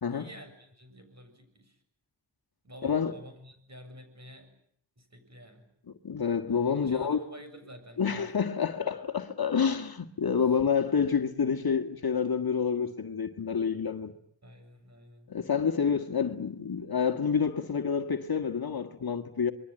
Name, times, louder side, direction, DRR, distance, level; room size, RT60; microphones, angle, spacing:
voice 1, 0.0-1.8 2.6-4.5 5.0-5.7 6.7-8.3 14.4-15.4, equal, 35° right, 7.4 m, -49 dB
voice 2, 2.8-3.1 6.0-7.2 8.0-14.1 15.3-19.5, left 6 dB, 50° left, 1.9 m, -28 dB
27.5 x 22.5 x 9.1 m
cardioid pair, 65°, 46 cm